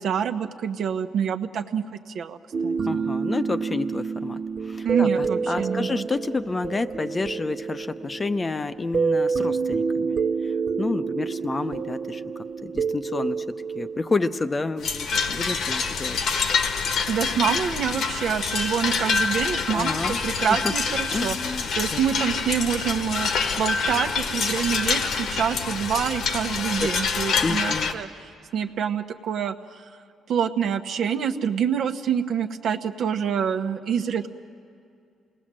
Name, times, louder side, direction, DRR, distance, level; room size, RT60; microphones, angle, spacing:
voice 1, 0.0-3.0 4.8-6.1 17.1-21.4 21.7-23.3 23.6-28.1 28.5-29.8 30.3-34.3, right 8 dB, 70° right, 7 dB, 1.0 m, -26 dB
sound 1, 2.5-15.7 20.0-20.2, right 5 dB, 50° right, 0.6 m, -28 dB
voice 2, 2.8-10.2 10.4-10.5 10.8-12.2 12.6-13.4 13.7-16.2 19.7-20.2 20.6-20.7 21.1-22.0 26.8-26.9 27.4-27.9, left 3 dB, 25° left, 11 dB, 0.7 m, -29 dB
sound 2, 14.8-27.9, left 5 dB, 75° left, 1.4 m, -26 dB
27.5 x 19.0 x 7.6 m, 2.4 s
cardioid pair, 90°, 0 cm